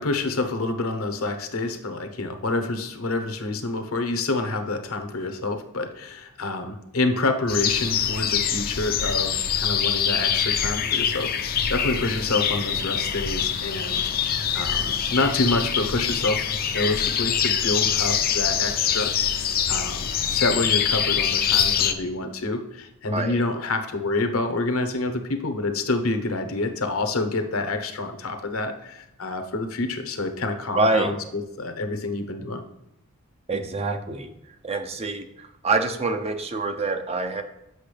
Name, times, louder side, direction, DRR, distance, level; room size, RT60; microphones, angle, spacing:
voice 1, 0.0-14.0 14.5-32.6, left 2 dB, 70° left, 7 dB, 0.9 m, -27 dB
sound 1, 7.5-21.9, left 8 dB, 45° left, 0.5 m, -24 dB
voice 2, 30.8-31.1 33.5-34.3 34.6-37.4, right 3 dB, 30° right, 7 dB, 0.6 m, -25 dB
8.0 x 6.2 x 3.3 m, 0.86 s
head